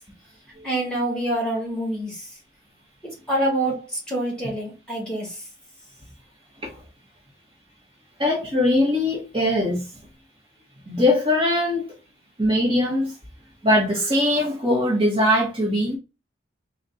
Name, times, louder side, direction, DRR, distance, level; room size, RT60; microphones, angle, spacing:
voice 1, 0.6-2.3 3.0-5.4, right 1 dB, 5° left, 1.6 m, -26 dB
voice 2, 8.2-9.9 10.9-11.9 12.4-13.2 13.6-16.0, left 1 dB, 30° right, 1.1 m, -21 dB
4.1 x 2.2 x 3.9 m
head